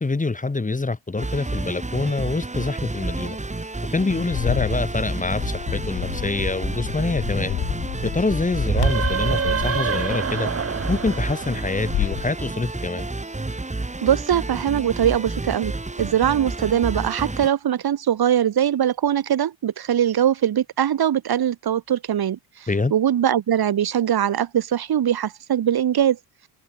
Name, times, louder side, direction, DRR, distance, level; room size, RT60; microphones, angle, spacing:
voice 1, 0.0-3.4 3.9-7.6 8.0-10.5 10.9-13.1 22.7-22.9, left 3 dB, 15° left, 2.0 m, -25 dB
sound 1, 1.2-17.5, right 2 dB, 15° right, 7.1 m, -30 dB
Bird, 4.3-12.3, left 13 dB, 65° left, 3.0 m, -31 dB
sound 2, 8.7-12.2, right 6 dB, 30° right, 2.1 m, -26 dB
voice 2, 14.0-26.2, right 10 dB, 55° right, 3.3 m, -22 dB
supercardioid pair, 80°, 45 cm